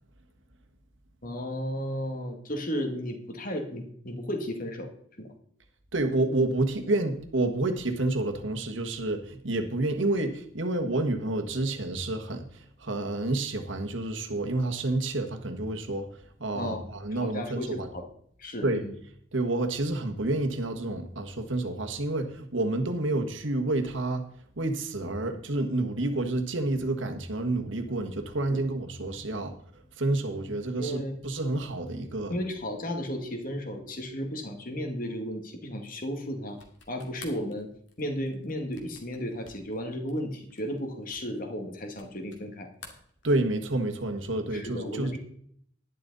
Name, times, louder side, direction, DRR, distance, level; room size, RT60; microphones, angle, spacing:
voice 1, 1.2-4.9 5.2-5.3 16.5-16.9 17.1-18.1 18.4-18.9 28.5-28.6 30.8-31.2 32.3-36.6 36.9-37.7 38.0-42.7 44.5-45.2, equal, 45° left, 4 dB, 2.0 m, -34 dB
voice 2, 5.9-12.5 12.8-16.1 16.4-17.9 18.6-18.8 19.3-24.2 24.6-29.5 30.0-32.3 43.2-45.2, right 2 dB, 70° right, 5 dB, 1.6 m, -29 dB
sound 1, 36.5-42.5 42.7-43.8, left 4 dB, 65° left, 2.3 m, -51 dB
11.0 x 11.0 x 4.1 m, 0.64 s
head